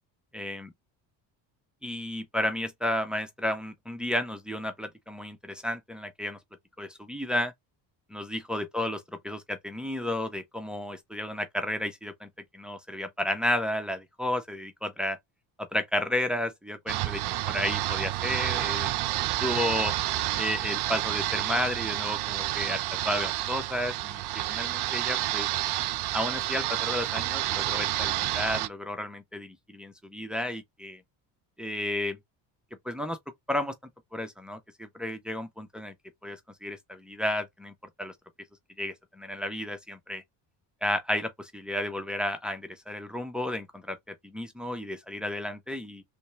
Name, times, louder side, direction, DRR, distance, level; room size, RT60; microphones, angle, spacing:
voice 1, 0.3-0.7 1.8-6.4 6.8-7.5 8.1-15.2 15.6-19.0 19.4-19.9 20.4-24.2 24.5-25.5 26.1-31.0 31.6-32.2 32.8-33.2 33.5-33.7 34.1-35.9 36.2-38.1 38.8-40.2 40.8-46.0, left 1 dB, ahead, 0.8 m, -32 dB
sound 1, 16.9-28.7, right 15 dB, 60° right, 0.6 m, -29 dB
3.3 x 2.7 x 3.3 m
cardioid pair, 95°, 44 cm